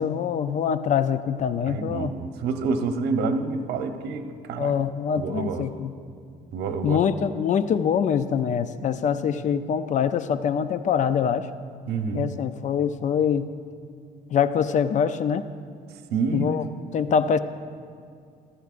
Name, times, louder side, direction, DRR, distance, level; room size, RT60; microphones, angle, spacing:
voice 1, 0.0-2.1 4.6-5.9 6.8-11.5 12.1-13.5 14.3-15.5 16.3-16.7 16.9-17.4, left 7 dB, 45° left, 12 dB, 0.4 m, -24 dB
voice 2, 1.7-4.7 5.1-5.7 6.5-7.0 11.9-12.3 16.1-16.5, right 4 dB, 75° right, 7 dB, 0.9 m, -28 dB
14.0 x 13.5 x 2.5 m, 2.3 s
cardioid pair, 110°, 17 cm